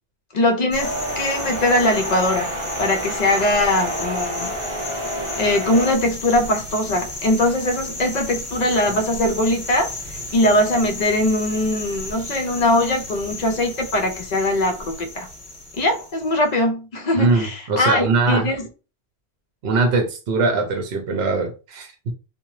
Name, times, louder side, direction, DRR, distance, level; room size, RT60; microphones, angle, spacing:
voice 1, 0.3-2.5 2.8-4.5 5.4-9.9 10.3-15.3 15.8-18.7, left 1 dB, 55° left, 0.5 m, -21 dB
sound 1, 0.7-16.5, left 2 dB, 30° left, 1.0 m, -34 dB
sound 2, 0.8-5.9, equal, 35° right, 0.6 m, -29 dB
voice 2, 17.2-18.5 19.6-22.1, right 3 dB, 70° right, 0.8 m, -21 dB
2.8 x 2.1 x 3.0 m
omnidirectional pair, 1.1 m